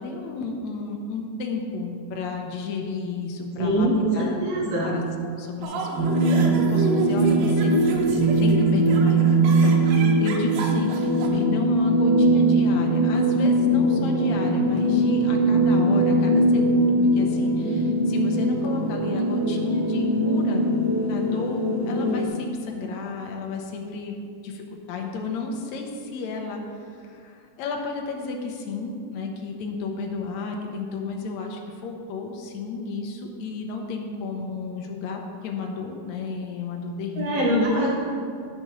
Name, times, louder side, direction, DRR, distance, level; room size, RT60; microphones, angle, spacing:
voice 1, 0.0-3.9 4.1-20.8 21.0-24.2 24.4-37.5, left 4 dB, 70° left, 2 dB, 1.9 m, -32 dB
voice 2, 3.6-4.9 37.2-37.9, right 1 dB, 55° right, -8 dB, 2.8 m, -23 dB
sound 1, 5.6-11.3, right 2 dB, 75° right, 2.3 m, -31 dB
sound 2, 6.0-22.3, right 1 dB, 35° right, 2.3 m, -21 dB
14.5 x 6.8 x 3.2 m, 2.4 s
omnidirectional pair, 4.1 m